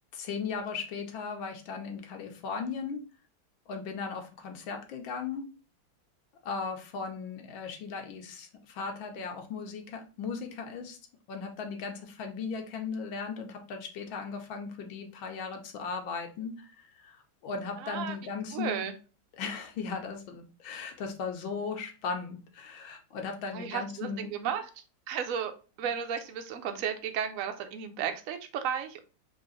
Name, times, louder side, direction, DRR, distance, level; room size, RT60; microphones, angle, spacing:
voice 1, 0.1-3.0 3.7-5.4 6.4-11.0 11.3-18.8 19.4-24.3, left 5 dB, 85° left, 4 dB, 1.6 m, -37 dB
voice 2, 17.8-18.2 18.5-18.9 23.5-24.6 25.1-25.5 25.8-29.0, right 8 dB, 65° right, 6 dB, 0.8 m, -33 dB
3.8 x 3.2 x 3.8 m, 0.34 s
omnidirectional pair, 2.1 m